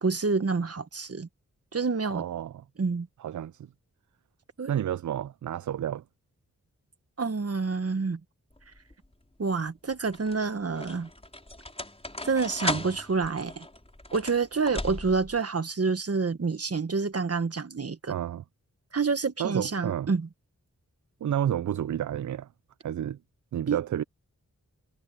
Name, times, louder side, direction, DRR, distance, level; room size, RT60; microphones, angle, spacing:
voice 1, 0.0-1.3 1.7-2.2 2.8-3.1 4.6-4.7 7.2-8.2 9.4-11.1 12.2-13.7 14.1-18.1 18.9-20.3 23.7-23.8, right 4 dB, 45° right, 1.5 m, -28 dB
voice 2, 2.1-2.6 3.2-3.7 4.7-6.0 18.1-18.4 19.4-20.1 21.2-22.5 22.8-23.2 23.5-24.0, right 10 dB, 65° right, 0.5 m, -30 dB
sound 1, 8.6-9.0 9.9-15.4, left 1 dB, 20° left, 4.7 m, -37 dB
cardioid pair, 55°, 33 cm